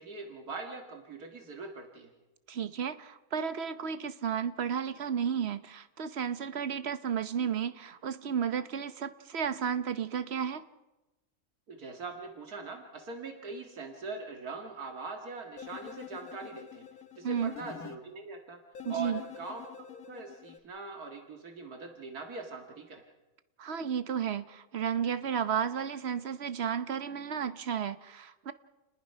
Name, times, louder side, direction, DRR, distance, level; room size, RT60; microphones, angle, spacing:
voice 1, 0.0-2.1 11.7-16.9 17.2-18.6 18.9-23.0, right 3 dB, 80° right, 3 dB, 2.3 m, -42 dB
voice 2, 2.5-10.7 17.2-17.5 18.8-19.2 23.6-28.5, right 7 dB, 50° right, 12 dB, 1.0 m, -33 dB
sound 1, 15.6-18.0 18.7-20.6, left 8 dB, 70° left, 1.7 m, -46 dB
29.5 x 20.0 x 5.6 m, 1.0 s
omnidirectional pair, 1.6 m